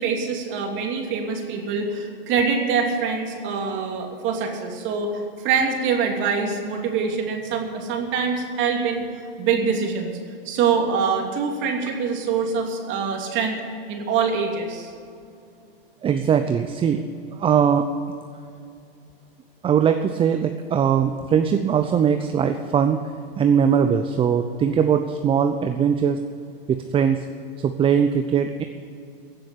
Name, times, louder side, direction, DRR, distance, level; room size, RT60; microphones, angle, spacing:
voice 1, 0.0-9.1 9.4-10.2 10.4-13.6 13.9-14.9, right 5 dB, 40° right, 2 dB, 2.9 m, -24 dB
voice 2, 16.0-17.0 17.4-17.9 19.6-23.0 23.4-26.2 26.7-27.3 27.6-28.6, right 7 dB, 20° right, 7 dB, 0.6 m, -20 dB
16.0 x 7.6 x 8.6 m, 2.4 s
hypercardioid pair, 125°, 29 cm